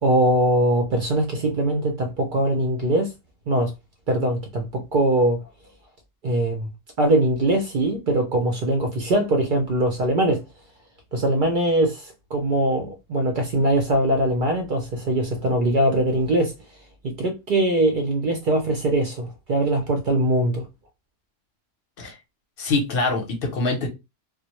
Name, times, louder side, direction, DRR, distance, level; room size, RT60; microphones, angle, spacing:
voice 1, 0.0-3.1 3.5-3.7 4.1-5.4 6.2-6.7 7.0-10.4 11.1-16.5 17.2-20.7, right 1 dB, 60° right, 0.5 m, -22 dB
voice 2, 22.6-23.9, left 3 dB, 55° left, 0.7 m, -24 dB
2.1 x 2.0 x 2.8 m
omnidirectional pair, 1.3 m